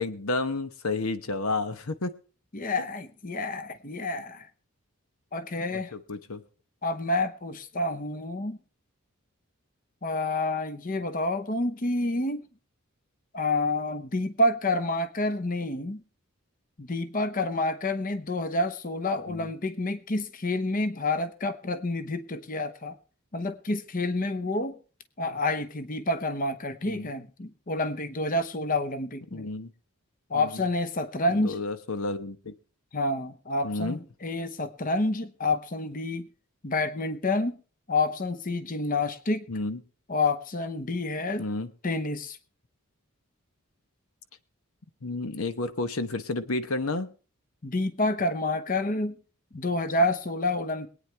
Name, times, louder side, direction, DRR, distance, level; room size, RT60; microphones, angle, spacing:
voice 1, 0.0-2.1 5.9-6.4 19.3-19.5 26.8-27.1 29.3-29.7 30.3-30.5 31.3-32.5 33.6-34.0 39.5-39.8 41.4-41.7 45.0-47.1, left 3 dB, 85° left, 11 dB, 1.0 m, -31 dB
voice 2, 2.5-4.5 5.3-5.9 6.8-8.6 10.0-12.4 13.3-16.0 16.8-22.9 23.3-24.8 25.2-29.5 30.3-31.6 32.9-36.3 36.6-37.6 37.9-39.5 40.1-41.4 41.8-42.4 47.6-49.1 49.5-50.9, left 2 dB, 40° left, 11 dB, 0.8 m, -28 dB
22.5 x 9.2 x 3.4 m, 0.38 s
head